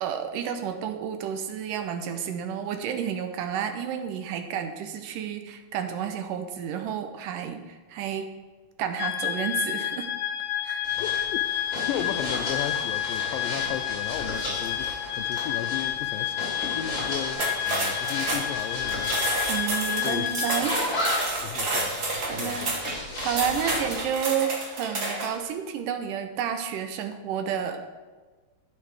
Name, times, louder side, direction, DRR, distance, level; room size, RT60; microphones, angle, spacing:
voice 1, 0.0-8.3 8.8-10.1 10.6-10.8 19.5-20.8 21.3-21.6 22.3-22.8 23.2-27.9, right 8 dB, 75° right, 2.3 m, -31 dB
sound 1, 9.0-20.6, left 11 dB, 65° left, 1.7 m, -30 dB
sound 2, 10.8-24.1, left 1 dB, 35° left, 3.5 m, -34 dB
voice 2, 11.0-11.4 11.9-16.4 16.7-19.1 20.0-20.4 21.4-22.0 22.3-22.8, left 11 dB, 85° left, 2.2 m, -35 dB
sound 3, 17.3-25.4, right 2 dB, 45° right, 1.2 m, -30 dB
11.0 x 7.0 x 4.9 m
omnidirectional pair, 4.0 m